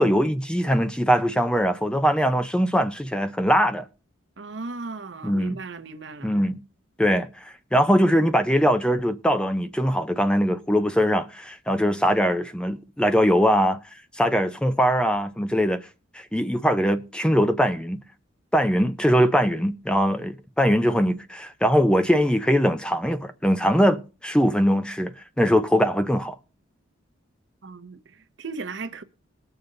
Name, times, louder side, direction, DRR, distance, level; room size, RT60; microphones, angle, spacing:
voice 1, 0.0-3.9 5.2-5.6 6.2-6.6 7.0-13.8 14.2-15.8 16.1-18.0 18.5-25.1 25.4-26.4, equal, 5° left, 0.6 m, -21 dB
voice 2, 4.4-6.3 27.6-29.0, right 3 dB, 60° right, 0.9 m, -36 dB
20.0 x 6.9 x 3.9 m
head